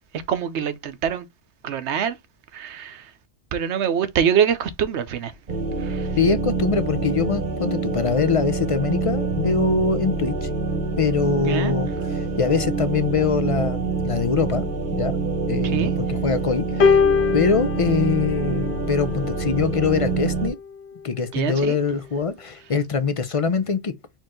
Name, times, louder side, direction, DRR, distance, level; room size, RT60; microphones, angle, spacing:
voice 1, 0.3-1.2 1.6-2.2 2.5-3.0 3.5-5.3 5.8-6.1 11.4-11.7 15.6-15.9 21.3-21.8, right 8 dB, 75° right, 1.0 m, -24 dB
sound 1, 5.5-20.5, right 4 dB, 45° right, 1.1 m, -26 dB
voice 2, 6.2-10.5 11.0-14.6 14.9-17.0 17.3-20.6 21.0-23.9, left 5 dB, 45° left, 0.4 m, -23 dB
sound 2, 16.8-19.3 20.3-20.5, left 5 dB, 70° left, 1.0 m, -22 dB
4.5 x 3.0 x 3.7 m
omnidirectional pair, 1.2 m